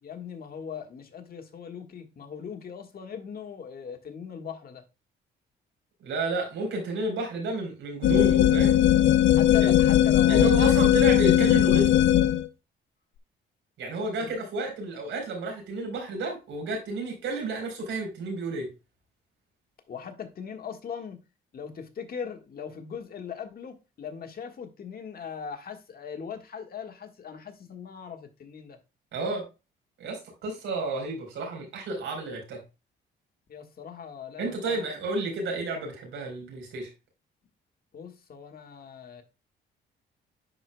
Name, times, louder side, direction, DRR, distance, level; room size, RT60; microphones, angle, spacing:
voice 1, 0.0-4.8 9.3-10.7 14.2-14.3 19.9-21.2 21.5-28.8 33.5-34.8 37.9-39.2, left 7 dB, 50° left, 1.6 m, -39 dB
voice 2, 6.0-8.8 9.6-9.7 10.3-12.1 13.8-18.7 29.1-29.5 30.0-32.6 34.4-36.9, right 3 dB, 80° right, 4.0 m, -31 dB
sound 1, 8.0-12.5, left 12 dB, 80° left, 0.5 m, -19 dB
10.5 x 4.7 x 2.2 m
cardioid pair, 90°, 20 cm